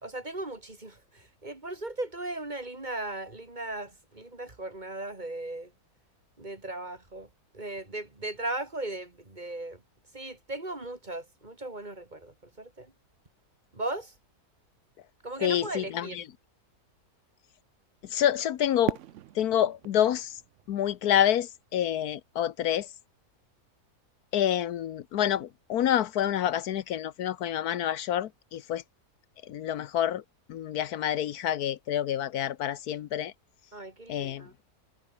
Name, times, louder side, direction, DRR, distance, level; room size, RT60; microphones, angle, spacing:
voice 1, 0.0-5.7 6.4-7.3 7.5-9.8 10.1-12.9 13.7-14.1 15.2-16.2 33.7-34.5, right 2 dB, 30° right, 2.9 m, -37 dB
voice 2, 15.4-16.2 18.1-19.0 19.4-20.3 20.7-22.9 24.3-28.8 29.5-30.2 30.5-33.3 34.1-34.4, left 10 dB, 80° left, 1.3 m, -27 dB
Fireworks, 18.9-21.9, right 13 dB, 65° right, 0.8 m, -38 dB
omnidirectional pair, 1.6 m